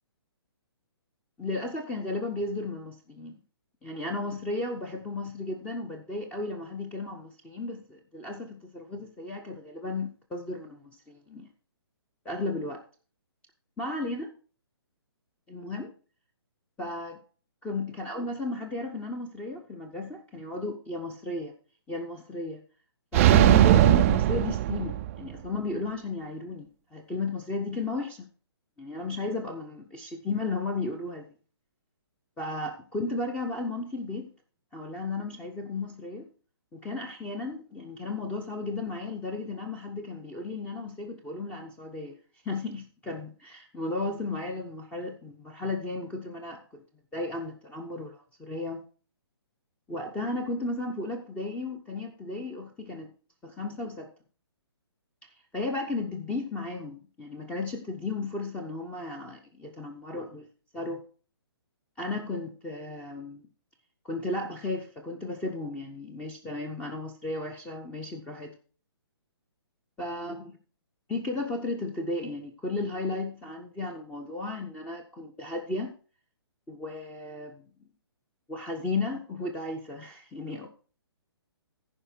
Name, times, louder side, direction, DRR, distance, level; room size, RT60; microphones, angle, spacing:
voice 1, 1.4-3.4 3.8-11.5 12.2-12.8 13.8-14.3 15.5-15.9 16.8-17.2 17.6-21.5 21.9-22.6 23.1-28.3 28.8-31.2 32.4-34.3 34.7-36.3 36.7-42.2 42.4-46.8 47.1-48.8 49.9-53.1 53.4-54.1 55.5-60.5 60.7-61.0 62.0-63.5 64.0-68.5 70.0-70.5 71.1-75.9 76.7-77.9 78.5-80.7, left 2 dB, 10° left, 4 dB, 1.0 m, -34 dB
sound 1, 23.1-25.3, right 14 dB, 30° right, 0.5 m, -19 dB
14.5 x 5.1 x 4.5 m, 0.38 s
figure-of-eight pair, 135°, 14 cm